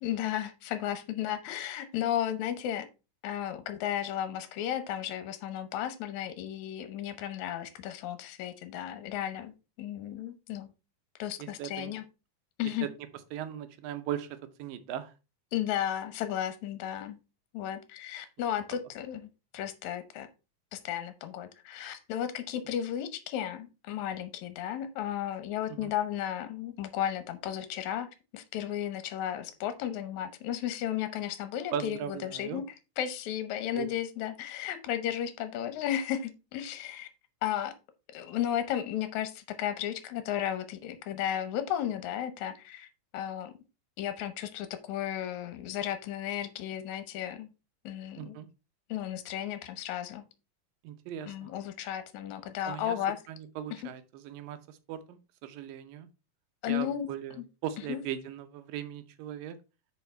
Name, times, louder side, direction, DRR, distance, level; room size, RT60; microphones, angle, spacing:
voice 1, 0.0-2.9 3.2-10.7 11.2-12.1 12.6-12.9 15.5-17.2 17.5-19.3 19.5-20.3 20.7-28.1 28.3-32.6 33.0-37.1 37.4-37.7 38.1-42.9 43.1-43.5 44.0-47.5 47.8-48.4 48.9-50.2 51.3-53.2 53.7-53.8 56.6-57.1 57.4-57.5 57.9-58.0, left 10 dB, 70° left, 10 dB, 2.1 m, -34 dB
voice 2, 11.4-11.9 12.8-12.9 13.3-15.1 25.7-25.9 31.7-32.6 33.7-33.9 48.2-48.5 50.8-51.5 52.7-53.0 53.3-56.1 56.7-59.6, right 10 dB, 90° right, 11 dB, 2.5 m, -38 dB
7.0 x 5.4 x 4.3 m, 0.30 s
omnidirectional pair, 3.9 m